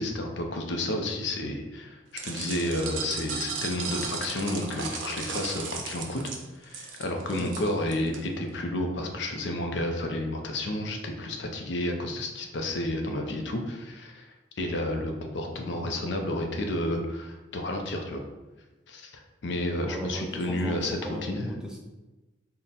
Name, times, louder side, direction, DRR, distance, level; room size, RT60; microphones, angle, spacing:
voice 1, 0.0-14.3 14.6-18.2 18.9-19.1 19.4-21.5, left 1 dB, 70° left, 3 dB, 0.5 m, -31 dB
sound 1, 2.2-8.2, right 5 dB, 90° right, 0.6 m, -36 dB
voice 2, 19.7-21.8, equal, 5° right, -1 dB, 0.4 m, -36 dB
3.7 x 2.1 x 4.1 m, 1.1 s
head